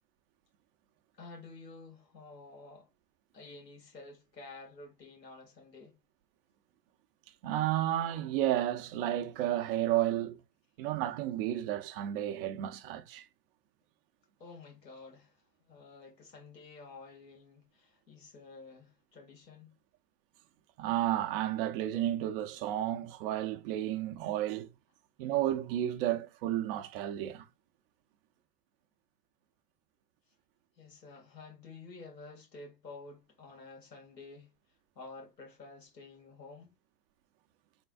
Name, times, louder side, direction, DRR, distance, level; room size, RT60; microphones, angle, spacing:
voice 1, 1.2-2.9 3.3-6.0 14.4-19.8 30.8-34.5 35.0-36.7, left 3 dB, 85° left, 2.0 m, -51 dB
voice 2, 7.4-10.4 10.8-13.2 20.8-24.7 25.2-27.5, right 12 dB, 35° right, 0.6 m, -32 dB
3.9 x 3.6 x 2.4 m
figure-of-eight pair, 100°, 49 cm